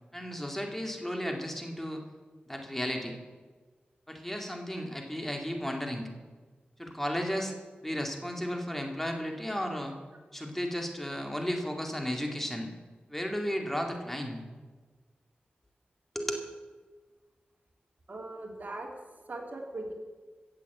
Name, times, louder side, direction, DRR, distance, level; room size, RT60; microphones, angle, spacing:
voice 1, 0.1-2.0 2.5-3.2 4.1-6.1 6.8-7.5 7.8-9.9 10.3-12.7 13.1-14.4 16.1-16.4, equal, 5° left, 3 dB, 2.3 m, -34 dB
voice 2, 18.1-18.9 19.3-19.9, right 2 dB, 55° right, 1 dB, 2.8 m, -39 dB
16.0 x 7.5 x 8.1 m, 1.4 s
cardioid pair, 55°, 4 cm